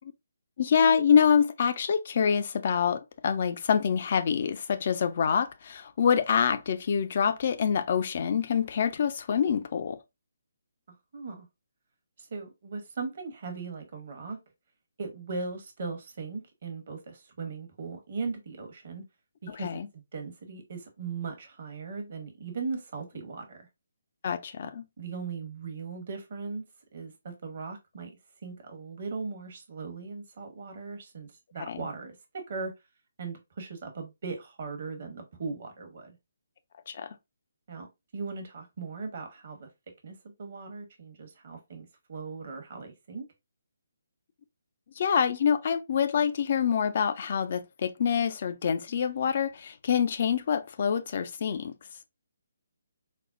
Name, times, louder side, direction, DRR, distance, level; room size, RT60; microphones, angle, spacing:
voice 1, 0.6-10.0 19.5-19.9 24.2-24.9 31.7-31.8 36.9-37.2 45.0-51.7, left 7 dB, 45° left, 0.3 m, -26 dB
voice 2, 11.1-11.5 12.2-14.4 15.0-19.0 19.4-23.6 25.0-26.6 26.9-28.1 28.4-32.7 33.2-36.2 37.7-37.9 38.1-39.7 40.0-43.3, right 4 dB, 45° right, 0.9 m, -38 dB
4.2 x 2.0 x 2.4 m
figure-of-eight pair, 140°, 0 cm